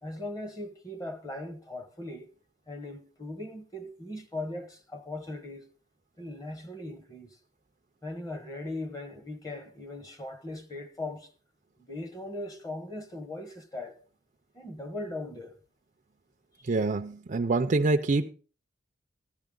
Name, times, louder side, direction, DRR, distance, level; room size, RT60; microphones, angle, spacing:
voice 1, 0.0-2.3 2.7-5.7 6.2-7.3 8.0-11.3 11.8-14.0 14.5-15.6 16.6-16.7, left 2 dB, 20° left, 1.1 m, -39 dB
voice 2, 16.6-18.3, right 3 dB, 40° right, 0.5 m, -26 dB
14.0 x 9.8 x 3.8 m
head